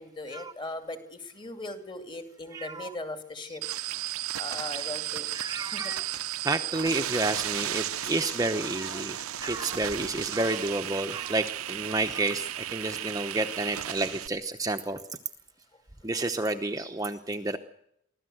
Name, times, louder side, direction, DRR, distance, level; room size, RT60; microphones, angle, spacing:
voice 1, 0.0-3.6 4.4-5.9, left 2 dB, 20° left, 7 dB, 2.5 m, -39 dB
voice 2, 2.5-2.9 5.3-6.1 6.4-15.0 16.0-17.6, right 2 dB, 15° right, 6 dB, 0.9 m, -30 dB
sound 1, 3.6-14.3, right 12 dB, 85° right, 0.8 m, -34 dB
24.5 x 16.5 x 7.9 m, 0.73 s
head